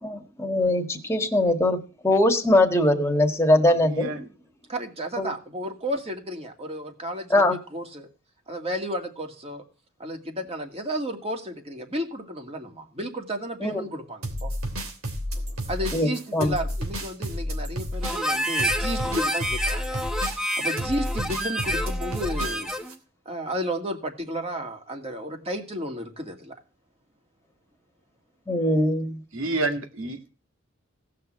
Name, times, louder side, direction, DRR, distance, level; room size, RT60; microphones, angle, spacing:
voice 1, 0.0-1.8 2.0-4.2 5.2-5.3 7.3-7.5 13.6-13.8 15.9-16.5 28.5-29.2, left 1 dB, 10° left, 1.8 m, -21 dB
voice 2, 3.7-4.3 29.3-30.3, right 2 dB, 70° right, 2.4 m, -29 dB
voice 3, 4.7-8.1 8.5-9.6 10.0-14.5 15.7-20.0 20.6-22.7 23.3-26.5, equal, 30° right, 2.3 m, -32 dB
sound 1, 14.2-22.9, equal, 90° right, 3.1 m, -31 dB
Harmonica, 18.0-22.9, equal, 5° right, 1.0 m, -28 dB
17.0 x 5.8 x 7.6 m
head